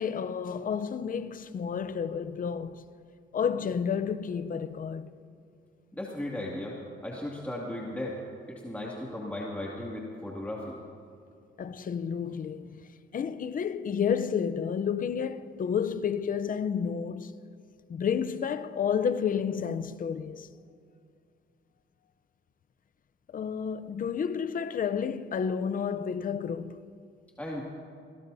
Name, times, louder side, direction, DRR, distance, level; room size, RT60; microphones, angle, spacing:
voice 1, 0.0-2.8 3.3-5.1 11.6-17.4 17.9-20.5 23.3-26.8, left 7 dB, 45° left, 0.7 m, -31 dB
voice 2, 5.9-8.2 8.5-10.8 27.4-27.6, left 1 dB, 5° left, 2.4 m, -36 dB
26.0 x 17.5 x 2.8 m
cardioid pair, 90°, 20 cm